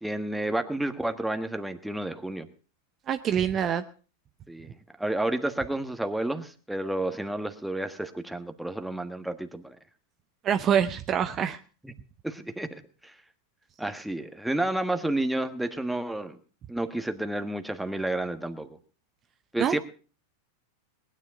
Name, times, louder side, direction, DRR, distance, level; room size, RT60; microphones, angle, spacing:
voice 1, 0.0-2.5 4.5-9.8 11.8-11.9 12.2-13.1 13.8-16.4 16.7-18.8 19.5-19.8, right 1 dB, 5° right, 7 dB, 1.4 m, -31 dB
voice 2, 3.1-3.8 10.4-11.6 19.6-19.8, right 8 dB, 35° right, 9 dB, 0.7 m, -25 dB
19.5 x 9.9 x 5.1 m, 0.38 s
hypercardioid pair, 95°, 0 cm